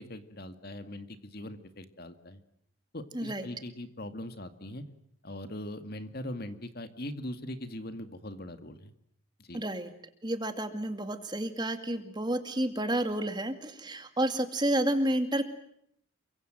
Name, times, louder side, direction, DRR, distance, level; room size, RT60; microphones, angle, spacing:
voice 1, 0.0-2.4 2.9-4.8 5.2-8.9 9.4-9.6, left 1 dB, 45° left, 9 dB, 2.1 m, -41 dB
voice 2, 3.1-3.5 9.5-9.9 10.2-15.4, right 1 dB, 20° right, 8 dB, 2.3 m, -30 dB
29.0 x 24.0 x 7.7 m, 0.72 s
head